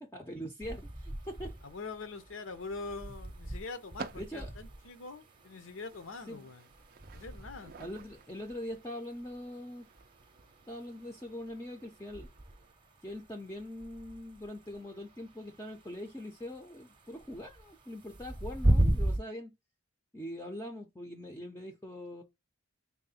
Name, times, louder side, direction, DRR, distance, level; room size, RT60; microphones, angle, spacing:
voice 1, 0.0-1.5 4.2-4.5 6.3-6.5 7.8-9.9 10.7-12.3 13.0-19.5 20.1-22.2, left 1 dB, 15° left, 0.5 m, -42 dB
sound 1, 0.6-19.2, right 1 dB, 25° right, 0.7 m, -37 dB
sound 2, 1.2-12.7, right 5 dB, 45° right, 0.3 m, -53 dB
voice 2, 1.6-6.7 7.1-7.7, left 3 dB, 85° left, 0.7 m, -43 dB
3.7 x 2.1 x 4.1 m
head